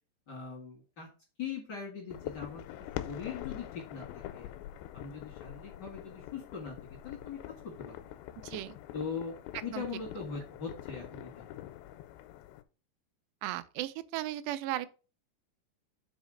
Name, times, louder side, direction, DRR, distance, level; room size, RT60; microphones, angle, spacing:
voice 1, 0.3-1.1 1.4-4.5 4.9-8.1 8.9-11.6, left 6 dB, 70° left, 1.0 m, -41 dB
sound 1, 2.1-12.6, left 13 dB, 90° left, 2.8 m, -44 dB
voice 2, 8.4-8.8 9.7-9.8 13.4-14.9, right 15 dB, 85° right, 2.6 m, -36 dB
6.3 x 4.1 x 6.2 m
omnidirectional pair, 4.9 m